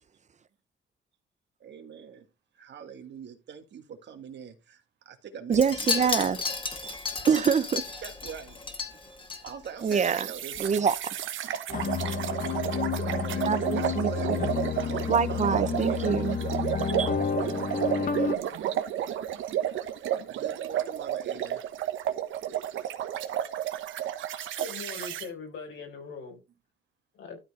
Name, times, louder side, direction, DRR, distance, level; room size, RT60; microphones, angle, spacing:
voice 1, 1.6-2.3 2.6-5.6 6.0-6.3 8.0-8.6 9.4-10.8 11.4-11.6 12.9-16.1 17.9-18.6 20.1-21.6, right 7 dB, 65° right, 1.9 m, -44 dB
Wind chime, 5.5-10.0 10.3-10.6 10.8-10.9, left 4 dB, 25° left, 2.0 m, -33 dB
voice 2, 5.5-6.4 7.3-7.8 9.8-10.3 10.6-11.1 13.5-14.4 15.1-16.4 17.0-17.1, right 6 dB, 35° right, 0.7 m, -25 dB
sound 1, 9.8-25.3, right 10 dB, 80° right, 1.2 m, -32 dB
sound 2, 11.7-18.4, left 6 dB, 45° left, 1.2 m, -30 dB
voice 3, 24.6-26.4 27.1-27.4, left 4 dB, 75° left, 4.4 m, -41 dB
12.5 x 4.5 x 4.2 m
cardioid pair, 90°, 20 cm